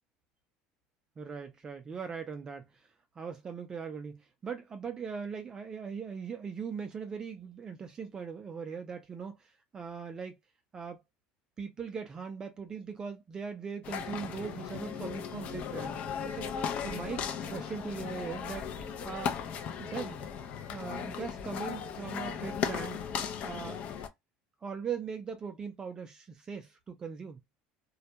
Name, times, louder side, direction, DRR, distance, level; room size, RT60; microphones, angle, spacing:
voice 1, 1.2-2.9 3.2-10.4 10.7-11.0 11.6-16.0 16.3-16.5 16.8-17.2 17.5-19.4 19.8-23.0 23.4-23.8 24.6-27.4, right 6 dB, 25° right, 0.4 m, -40 dB
sound 1, 13.8-24.1, left 7 dB, 45° left, 0.5 m, -37 dB
2.2 x 2.1 x 2.7 m
cardioid pair, 145°, 3 cm